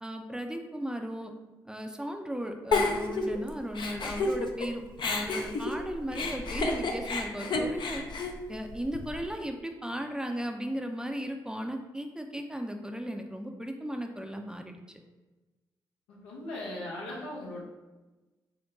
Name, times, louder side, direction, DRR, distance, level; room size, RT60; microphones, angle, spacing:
voice 1, 0.0-1.3 1.6-8.1 8.5-14.8, equal, 5° right, 4 dB, 0.5 m, -36 dB
Giggle, 2.7-4.7 5.0-9.2, left 3 dB, 55° left, 0.5 m, -31 dB
voice 2, 16.1-17.6, left 1 dB, 85° left, -4 dB, 0.8 m, -38 dB
3.7 x 2.2 x 3.6 m, 1.2 s
hypercardioid pair, 40°, 10 cm